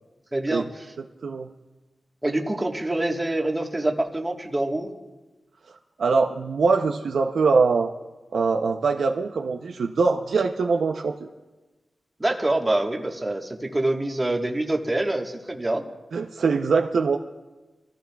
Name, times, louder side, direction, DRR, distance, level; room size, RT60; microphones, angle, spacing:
voice 1, 0.3-0.9 2.2-4.9 12.2-15.8, right 1 dB, 20° right, 2 dB, 1.4 m, -26 dB
voice 2, 6.0-7.9 8.3-11.2 16.1-17.2, right 4 dB, 90° right, 3 dB, 0.6 m, -22 dB
26.0 x 15.0 x 2.3 m, 1.2 s
wide cardioid pair, 95°, 0 cm